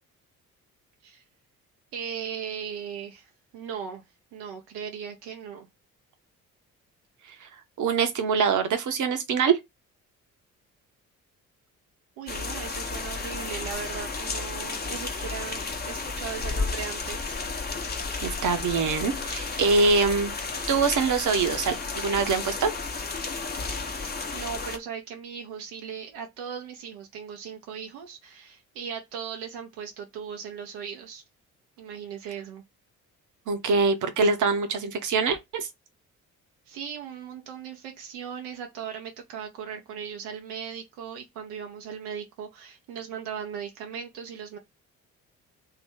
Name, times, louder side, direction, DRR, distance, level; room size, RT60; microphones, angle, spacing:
voice 1, 1.9-4.0 4.3-5.7 12.2-17.3 24.0-31.2 31.8-32.6 36.7-44.6, right 7 dB, 65° right, 0.9 m, -38 dB
voice 2, 7.8-9.6 18.2-20.4 20.7-22.7 33.5-35.7, right 4 dB, 45° right, 1.1 m, -24 dB
sound 1, 12.3-24.8, left 4 dB, 20° left, 1.0 m, -32 dB
3.1 x 2.9 x 4.5 m
figure-of-eight pair, 45°, 42 cm